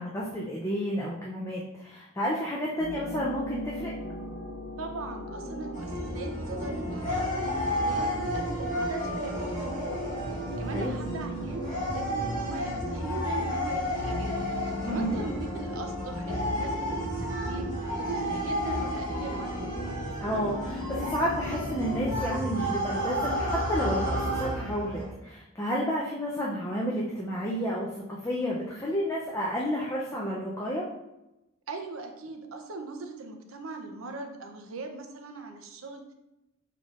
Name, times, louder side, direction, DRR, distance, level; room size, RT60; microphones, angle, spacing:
voice 1, 0.0-3.9 10.7-10.9 14.8-15.2 20.2-30.9, equal, 15° left, -4 dB, 0.5 m, -31 dB
sound 1, 2.8-22.1, right 1 dB, 75° left, 1.3 m, -39 dB
voice 2, 4.8-14.5 14.8-19.7 31.7-36.1, right 3 dB, 85° right, 4 dB, 0.6 m, -40 dB
sound 2, 5.7-25.1, equal, 35° left, 1.4 m, -32 dB
5.6 x 3.4 x 2.4 m, 0.93 s
head